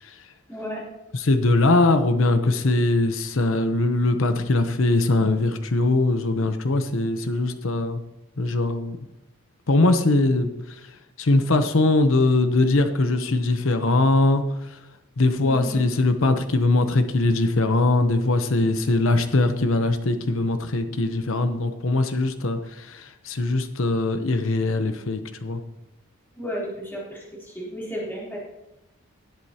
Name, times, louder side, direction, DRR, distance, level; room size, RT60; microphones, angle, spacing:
voice 1, 0.5-0.8 15.4-15.9 26.4-28.4, equal, 10° left, -6 dB, 3.5 m, -33 dB
voice 2, 1.1-8.0 8.4-9.0 9.7-10.9 11.2-14.8 15.2-25.6, left 2 dB, 70° left, 8 dB, 0.9 m, -21 dB
18.0 x 7.9 x 2.9 m, 0.94 s
head